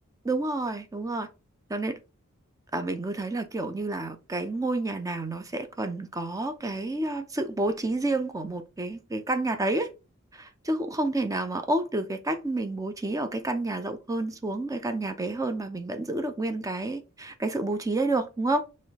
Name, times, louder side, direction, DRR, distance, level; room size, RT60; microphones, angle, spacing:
voice 1, 0.2-1.3 1.7-2.0 2.7-9.9 10.3-18.6, right 2 dB, 15° right, 0.5 m, -29 dB
4.6 x 3.0 x 2.8 m
head